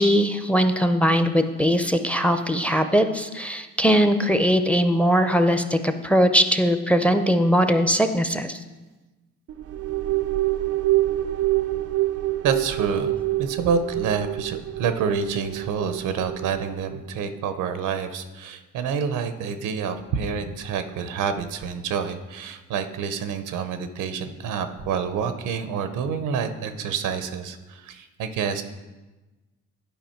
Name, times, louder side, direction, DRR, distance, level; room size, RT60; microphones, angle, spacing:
voice 1, 0.0-8.6, equal, 5° left, 9 dB, 0.5 m, -20 dB
sound 1, 9.5-17.1, right 16 dB, 50° right, 0.4 m, -26 dB
voice 2, 12.4-28.6, right 6 dB, 90° right, 10 dB, 0.7 m, -28 dB
10.5 x 5.1 x 4.4 m, 1.2 s
cardioid pair, 90°, 30 cm